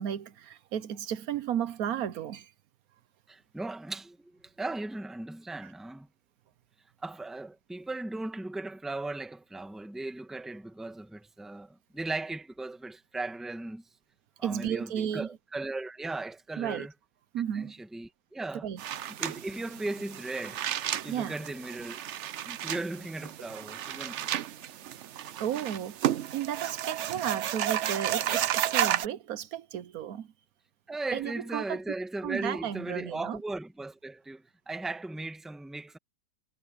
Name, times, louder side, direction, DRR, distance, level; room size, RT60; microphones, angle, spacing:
voice 1, 0.0-2.5 14.4-15.3 16.6-16.9 17.3-17.7 18.6-18.8 21.1-21.4 25.4-26.0 26.3-30.3 31.1-31.8 32.2-33.4, right 9 dB, 75° right, 1.2 m, -33 dB
voice 2, 3.3-4.3 4.6-6.1 7.0-13.8 14.4-16.9 17.5-18.7 19.2-20.6 21.0-22.0 22.4-24.3 30.9-36.0, right 2 dB, ahead, 1.1 m, -37 dB
sound 1, 18.8-29.1, right 11 dB, 60° right, 0.9 m, -32 dB
omnidirectional pair, 1.6 m